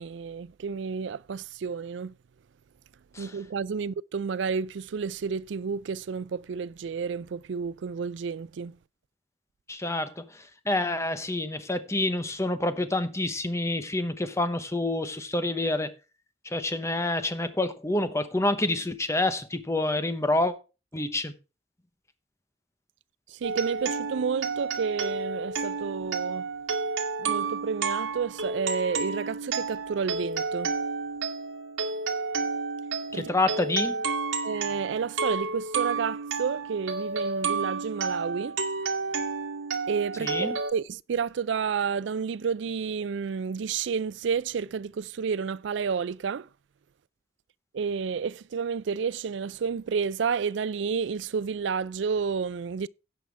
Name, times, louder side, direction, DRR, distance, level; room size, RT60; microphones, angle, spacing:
voice 1, 0.0-2.1 3.2-8.8 23.3-26.5 27.2-30.8 33.1-33.3 34.4-38.6 39.9-46.5 47.7-52.9, right 6 dB, 65° right, 0.4 m, -30 dB
voice 2, 9.7-10.2 10.7-15.9 16.4-20.5 20.9-21.3 33.1-33.9 40.2-40.5, left 2 dB, 15° left, 0.9 m, -27 dB
sound 1, 23.4-40.7, right 4 dB, 85° right, 1.6 m, -31 dB
16.5 x 5.7 x 3.3 m
head